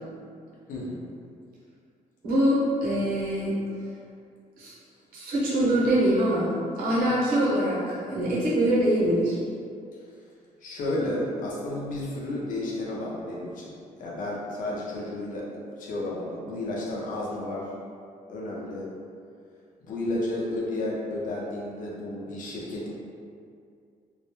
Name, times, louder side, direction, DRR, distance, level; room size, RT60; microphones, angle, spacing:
voice 1, 0.7-1.0 10.6-15.5 15.8-17.7 18.3-18.9 19.8-22.9, left 1 dB, 70° left, -5 dB, 0.6 m, -32 dB
voice 2, 2.2-3.5 4.6-4.7 5.1-9.4, right 1 dB, 90° right, -7 dB, 0.8 m, -24 dB
2.3 x 2.1 x 2.9 m, 2.3 s
cardioid pair, 115°, 14 cm